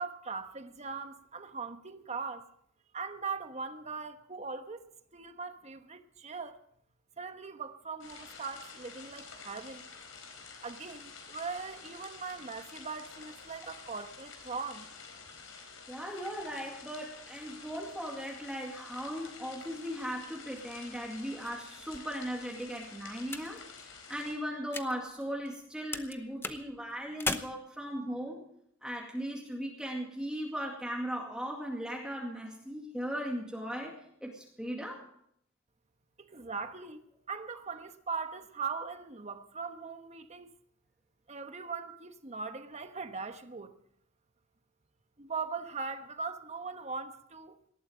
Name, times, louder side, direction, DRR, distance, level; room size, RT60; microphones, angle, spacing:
voice 1, 0.0-2.5 2.9-4.8 5.1-6.6 7.2-9.9 10.6-14.9 36.2-40.5 41.3-43.7 45.2-47.6, right 4 dB, 35° right, 1.2 m, -40 dB
sound 1, 8.0-24.3, left 5 dB, 85° left, 4.4 m, -50 dB
voice 2, 15.9-28.4 28.8-35.0, equal, 5° right, 2.2 m, -38 dB
sound 2, 20.6-25.7 25.9-27.4, left 3 dB, 10° left, 0.8 m, -41 dB
19.0 x 13.0 x 5.1 m
head